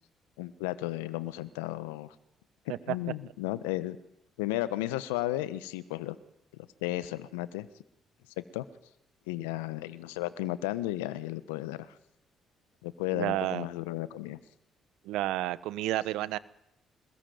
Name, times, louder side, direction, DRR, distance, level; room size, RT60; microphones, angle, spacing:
voice 1, 0.4-2.1 2.9-4.0 4.4-6.2 6.8-7.7 8.4-8.6 9.3-11.9 12.8-14.4, left 16 dB, 85° left, 15 dB, 1.2 m, -34 dB
voice 2, 13.1-13.7 15.0-16.4, right 15 dB, 75° right, 17 dB, 1.0 m, -31 dB
26.0 x 20.5 x 9.5 m, 0.86 s
hypercardioid pair, 50°, 0 cm